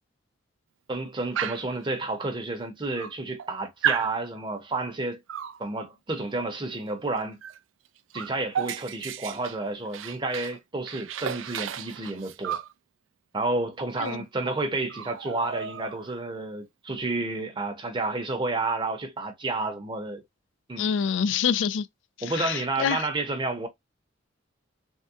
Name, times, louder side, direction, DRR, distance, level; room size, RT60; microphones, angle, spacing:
voice 1, 0.9-5.2 5.6-7.4 8.1-12.6 13.3-20.2 20.7-20.9 22.2-23.7, right 2 dB, 25° right, 0.7 m, -30 dB
Dog, 1.4-1.8 2.6-2.7 3.0-3.5 3.8-4.1 5.3-5.6 7.4-7.6 7.9-10.6 10.9-12.7 14.0-14.1 14.4-14.6 14.9-16.2, right 9 dB, 80° right, 0.4 m, -33 dB
voice 2, 20.8-21.9 22.2-23.0, left 7 dB, 70° left, 0.3 m, -26 dB
3.5 x 2.1 x 2.6 m
head